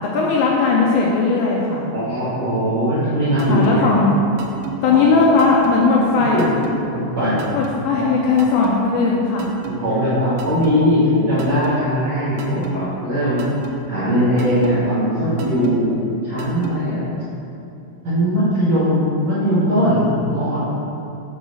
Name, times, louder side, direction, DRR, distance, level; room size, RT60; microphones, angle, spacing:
voice 1, 0.1-1.9 3.5-4.2 4.8-6.5 7.5-9.5, left 4 dB, 80° left, -3 dB, 2.6 m, -17 dB
voice 2, 1.9-3.9 4.9-5.0 6.3-6.5 6.9-7.4 7.9-8.2 9.6-13.5 13.9-15.9 16.2-17.0 18.0-20.6, equal, 65° right, -13 dB, 1.6 m, -19 dB
sound 1, 3.4-3.7 4.4-4.7 5.4-5.7 6.4-6.7 7.4-7.7 8.4-8.7 9.4-9.7 10.4-10.7 11.4-11.7 12.4-12.7 13.4-13.7 14.4-14.7 15.4-15.7 16.4-16.7, right 8 dB, 85° right, 2.8 m, -32 dB
7.6 x 3.9 x 6.2 m, 2.7 s
omnidirectional pair, 5.6 m